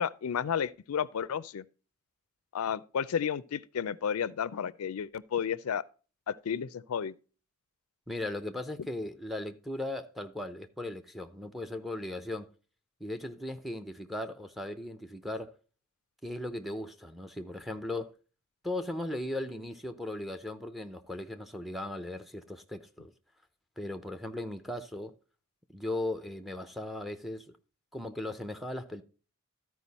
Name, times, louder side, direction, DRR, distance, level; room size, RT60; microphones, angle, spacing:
voice 1, 0.0-1.6 2.5-5.8 6.3-7.1, left 7 dB, 85° left, 0.4 m, -32 dB
voice 2, 8.1-12.5 13.0-15.6 16.2-18.1 18.6-23.1 23.8-25.1 25.7-27.5 27.9-29.0, left 1 dB, ahead, 0.6 m, -37 dB
13.0 x 4.7 x 4.1 m
head